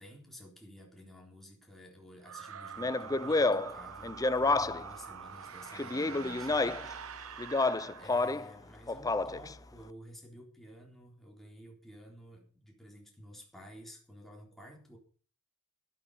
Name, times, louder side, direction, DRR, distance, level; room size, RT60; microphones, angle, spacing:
voice 1, 0.0-6.8 8.0-15.0, equal, ahead, -1 dB, 3.7 m, -52 dB
sound 1, 2.2-8.7, right 7 dB, 90° right, 0.9 m, -45 dB
Speech, 2.8-4.9 5.8-6.9 7.4-8.5 8.9-9.5, left 3 dB, 15° left, 0.5 m, -29 dB
12.0 x 12.0 x 5.5 m, 0.42 s
head